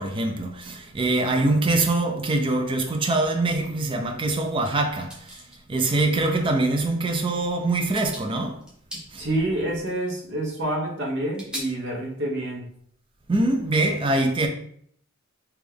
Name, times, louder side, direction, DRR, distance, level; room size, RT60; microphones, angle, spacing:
voice 1, 0.0-5.1 5.7-8.6 13.3-14.5, right 2 dB, 25° right, 0.4 m, -23 dB
sound 1, 4.6-5.6 6.9-7.0 7.4-7.6 7.9-8.3 8.6-9.1 10.1-10.2 11.3-11.6, right 1 dB, 5° right, 0.9 m, -38 dB
voice 2, 9.2-12.6, right 1 dB, 55° right, 1.0 m, -28 dB
3.4 x 3.0 x 3.5 m
head